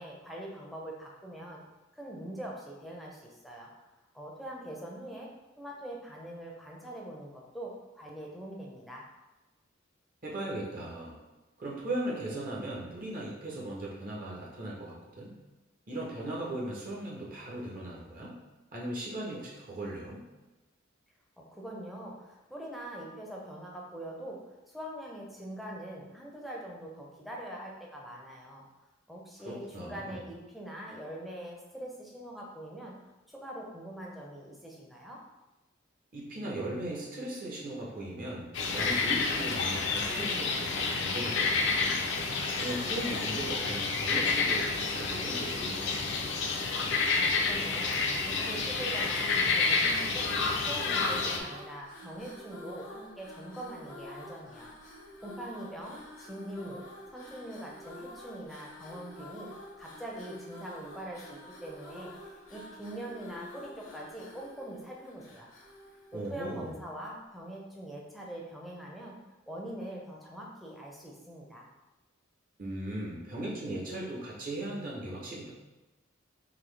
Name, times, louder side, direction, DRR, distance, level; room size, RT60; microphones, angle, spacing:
voice 1, 0.0-1.6 1.9-3.7 4.1-5.3 5.6-9.1 21.5-24.4 24.7-28.6 29.1-32.9 33.3-35.2 47.1-48.0 48.2-50.3 50.7-54.7 55.2-56.8 57.1-59.5 59.8-65.5 66.1-69.2 69.5-71.7, right 1 dB, ahead, -3 dB, 0.5 m, -43 dB
voice 2, 10.2-11.2 11.6-15.3 15.9-18.4 18.7-20.2 29.4-30.2 36.1-38.5 38.7-42.0 42.6-46.1 66.1-66.7 72.6-75.5, right 1 dB, 45° right, -4 dB, 0.7 m, -38 dB
sound 1, 38.5-51.4, left 4 dB, 60° left, 0.5 m, -29 dB
sound 2, 50.5-66.9, left 1 dB, 80° left, 0.9 m, -48 dB
3.9 x 2.7 x 3.2 m, 1.1 s
head